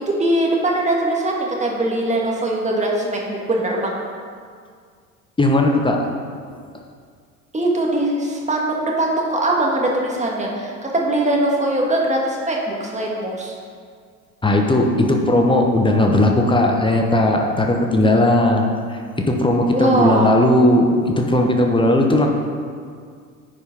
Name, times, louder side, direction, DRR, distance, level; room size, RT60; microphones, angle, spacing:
voice 1, 0.1-3.9 7.5-13.5 19.7-20.3, right 1 dB, 15° right, -2 dB, 2.0 m, -21 dB
voice 2, 5.4-6.0 14.4-22.3, left 1 dB, 10° left, 2 dB, 1.1 m, -17 dB
9.6 x 5.4 x 5.1 m, 2.1 s
figure-of-eight pair, 65°, 45 cm